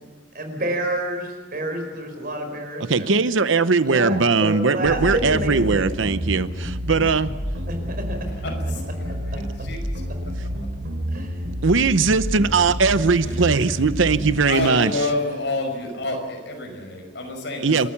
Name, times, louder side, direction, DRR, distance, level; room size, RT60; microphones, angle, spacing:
voice 1, 0.3-3.1 3.8-5.8 7.7-8.2 11.1-11.3, right 1 dB, 50° right, 5 dB, 4.8 m, -29 dB
voice 2, 2.8-7.3 11.6-14.9 17.6-17.9, right 4 dB, 85° right, 13 dB, 0.8 m, -20 dB
sound 1, 4.8-14.5, equal, 65° right, 3.3 m, -29 dB
voice 3, 8.3-10.0 13.2-13.8 14.4-17.9, left 2 dB, 65° left, 3 dB, 5.7 m, -29 dB
29.0 x 13.5 x 7.1 m, 1.3 s
head